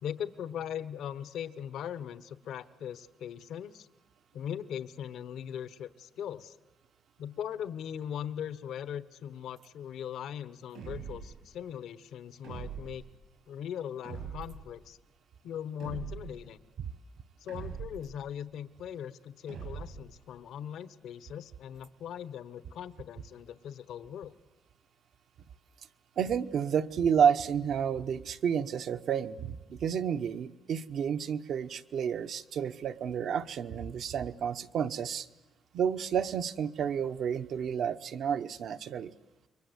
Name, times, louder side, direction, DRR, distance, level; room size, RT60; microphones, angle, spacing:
voice 1, 0.0-3.9 4.3-6.6 7.2-13.0 13.5-15.0 15.4-16.6 17.4-24.3, left 9 dB, 75° left, 16 dB, 1.0 m, -40 dB
sound 1, 10.7-11.4 12.4-13.1 14.0-14.7 15.8-16.4 17.5-18.2 19.5-20.1, right 6 dB, 85° right, 7.6 m, -42 dB
voice 2, 26.2-35.3 35.7-39.1, right 7 dB, 65° right, 9 dB, 1.0 m, -30 dB
28.5 x 23.5 x 8.0 m, 1.1 s
cardioid pair, 125°, 0 cm